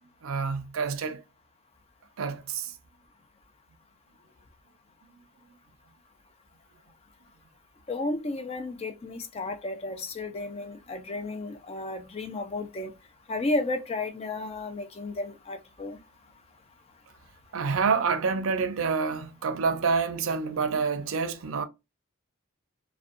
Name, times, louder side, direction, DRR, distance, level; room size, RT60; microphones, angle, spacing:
voice 1, 0.2-1.2 2.2-2.7 17.5-21.6, right 5 dB, 80° right, 0.4 m, -27 dB
voice 2, 7.9-12.9 13.3-16.0, left 2 dB, 30° left, 0.3 m, -33 dB
2.6 x 2.1 x 2.4 m
head